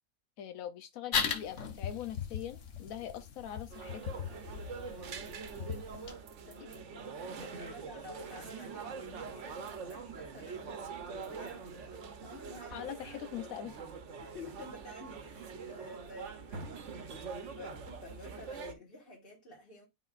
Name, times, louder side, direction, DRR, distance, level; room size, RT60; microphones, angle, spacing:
voice 1, 0.4-4.1 12.7-13.8, left 10 dB, 90° left, 1.1 m, -42 dB
sound 1, 1.1-6.1, left 6 dB, 60° left, 1.2 m, -38 dB
sound 2, 3.7-18.7, right 5 dB, 65° right, 1.1 m, -44 dB
voice 2, 6.5-10.7 11.3-13.0 14.2-19.9, left 2 dB, 45° left, 1.9 m, -51 dB
11.0 x 3.9 x 2.4 m
omnidirectional pair, 1.4 m